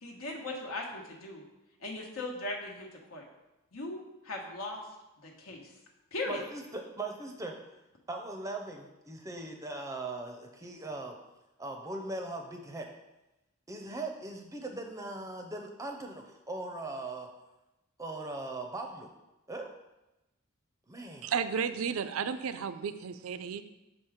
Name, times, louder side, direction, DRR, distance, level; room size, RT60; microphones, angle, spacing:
voice 1, 0.0-1.4 1.8-3.2 3.7-4.8 5.2-5.7 6.1-6.4, left 2 dB, 80° left, -1 dB, 1.2 m, -38 dB
voice 2, 6.3-7.6 8.1-11.1 11.6-12.9 13.7-17.3 18.0-19.1 19.5-19.7 20.9-21.3, right 2 dB, 15° right, 2 dB, 0.5 m, -39 dB
voice 3, 21.2-23.6, right 6 dB, 75° right, 12 dB, 0.4 m, -33 dB
6.1 x 4.5 x 4.9 m, 0.97 s
head